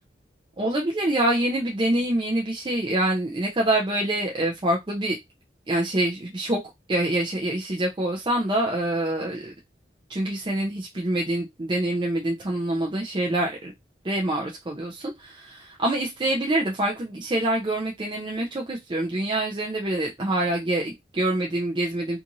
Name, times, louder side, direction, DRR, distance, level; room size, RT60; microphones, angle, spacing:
voice 1, 0.6-5.2 5.7-6.6 6.9-9.5 10.1-13.7 14.0-22.2, right 1 dB, 25° right, 0.5 m, -26 dB
2.6 x 2.5 x 2.8 m
head